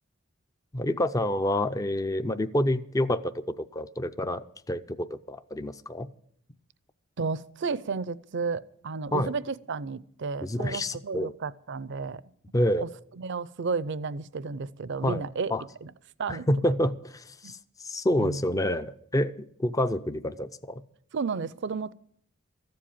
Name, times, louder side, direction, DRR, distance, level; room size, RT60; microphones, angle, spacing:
voice 1, 0.7-6.1 9.1-9.3 10.4-11.3 12.5-12.9 15.0-15.2 15.5-15.6 16.3-17.6 17.8-20.8, left 1 dB, 15° left, 0.5 m, -28 dB
voice 2, 7.2-12.2 12.5-12.6 12.8-12.9 13.2-15.5 15.8-15.9 16.2-16.5 17.4-17.5 18.2-18.4 21.1-21.9, right 4 dB, 60° right, 0.5 m, -32 dB
14.0 x 7.7 x 8.6 m
head